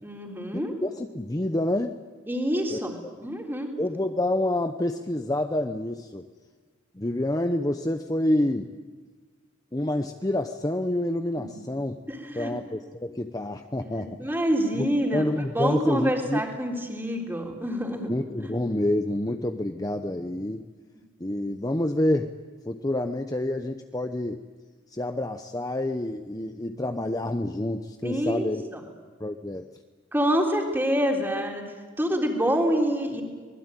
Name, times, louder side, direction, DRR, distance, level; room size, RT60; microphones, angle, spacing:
voice 1, 0.0-0.7 2.3-3.7 12.1-12.5 13.8-15.3 15.5-18.1 28.0-28.8 30.1-31.6 32.0-33.2, equal, 10° right, 1 dB, 3.7 m, -27 dB
voice 2, 0.8-2.0 2.7-2.8 3.8-6.3 6.9-8.7 9.7-12.0 12.3-14.3 15.1-16.4 18.1-20.7 21.2-22.3 22.7-24.4 24.9-28.6 29.2-29.7, left 1 dB, 20° left, 6 dB, 0.8 m, -28 dB
25.5 x 20.5 x 9.1 m, 1.5 s
head